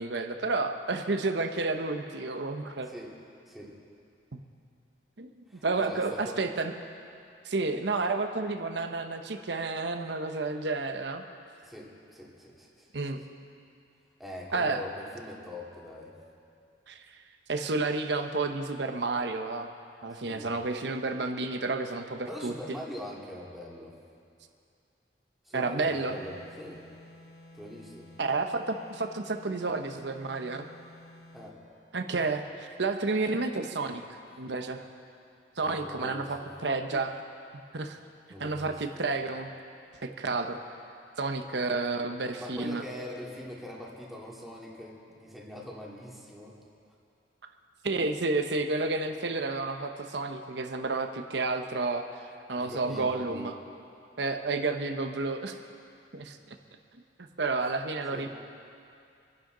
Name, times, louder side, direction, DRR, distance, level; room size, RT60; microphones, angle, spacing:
voice 1, 0.0-2.9 4.3-4.4 5.2-6.7 7.4-11.2 12.9-13.2 14.5-14.8 16.9-17.1 17.5-19.7 20.0-22.5 25.5-26.2 28.2-30.6 31.9-34.0 34.4-34.8 35.6-37.2 37.5-38.0 38.4-39.5 40.0-40.6 41.2-42.8 47.8-52.1 52.5-53.5 54.2-55.6 56.1-56.6 57.2-58.3, right 3 dB, 75° right, 6 dB, 0.9 m, -31 dB
voice 2, 5.5-6.4 11.6-12.9 14.2-16.1 20.1-20.5 22.3-23.9 25.4-26.9 27.5-28.1 31.3-31.6 35.6-36.5 38.3-38.8 42.4-46.6 52.6-53.5 58.1-58.3, left 1 dB, ahead, -4 dB, 2.3 m, -42 dB
sound 1, 25.8-31.6, left 1 dB, 60° left, 2.8 m, -52 dB
27.0 x 11.0 x 3.9 m, 2.5 s
head